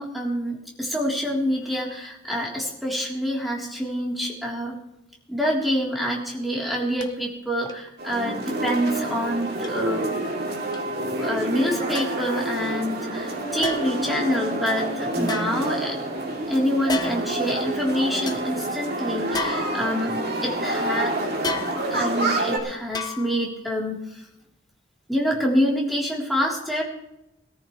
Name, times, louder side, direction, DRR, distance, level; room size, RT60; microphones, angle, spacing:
voice 1, 0.0-4.8 5.3-10.1 10.9-16.0 16.5-21.2 21.9-24.2 25.1-26.8, equal, ahead, -3 dB, 3.5 m, -26 dB
sound 1, 7.0-7.1 7.6-7.9 8.6-8.7 9.6-9.7 10.7-10.8 11.9-12.3 13.6-14.1 15.2-16.1 16.9-17.4 17.8-17.9 18.3-18.4 19.3-20.2 21.4-22.1 22.9-23.5 23.9-24.0, left 2 dB, 25° left, 1.0 m, -32 dB
sound 2, 8.0-22.6, right 1 dB, 60° right, 2.9 m, -28 dB
21.0 x 14.0 x 3.2 m, 0.84 s
head